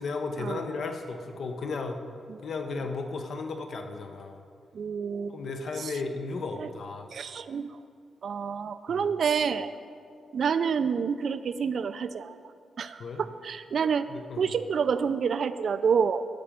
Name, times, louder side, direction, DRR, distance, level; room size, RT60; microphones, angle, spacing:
voice 1, 0.0-2.0 2.4-4.4 5.3-7.1 8.9-9.1 13.0-13.2 14.1-14.5, left 3 dB, 55° left, 5 dB, 0.9 m, -34 dB
voice 2, 4.7-5.4 5.8-5.9 6.6-6.7 7.1-7.7 8.2-9.7 10.3-12.4 12.8-14.1 14.4-16.2, right 6 dB, 55° right, 12 dB, 0.4 m, -28 dB
12.0 x 5.2 x 7.3 m, 2.3 s
wide cardioid pair, 145°, 0 cm